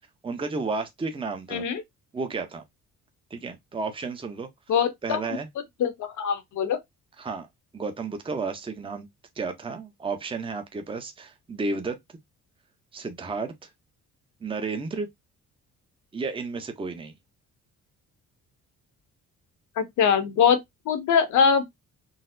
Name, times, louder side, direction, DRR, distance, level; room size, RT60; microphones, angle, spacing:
voice 1, 0.2-1.6 2.1-2.6 3.3-4.5 5.0-5.5 7.2-7.5 7.7-9.1 9.4-12.0 12.9-13.7 14.4-15.1 16.1-17.1, right 4 dB, 15° right, 0.6 m, -32 dB
voice 2, 4.7-5.2 5.8-6.8 19.8-20.6 20.9-21.6, left 7 dB, 75° left, 0.8 m, -22 dB
3.9 x 2.0 x 2.5 m
cardioid pair, 90°, 30 cm